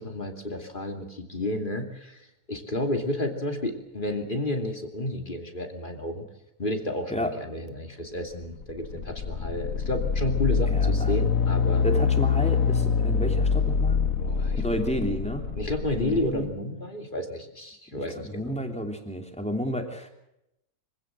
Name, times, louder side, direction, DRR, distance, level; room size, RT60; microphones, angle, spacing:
voice 1, 0.0-6.2 6.6-11.8 14.2-14.6 15.5-18.5, left 1 dB, 35° left, 4 dB, 2.9 m, -31 dB
sound 1, 8.4-16.4, left 6 dB, 75° left, 1.6 m, -25 dB
voice 2, 10.7-11.1 11.8-14.0 14.6-15.5 15.9-16.5 17.9-20.1, equal, 5° left, 4 dB, 3.1 m, -31 dB
25.0 x 16.5 x 7.6 m, 0.84 s
omnidirectional pair, 1.4 m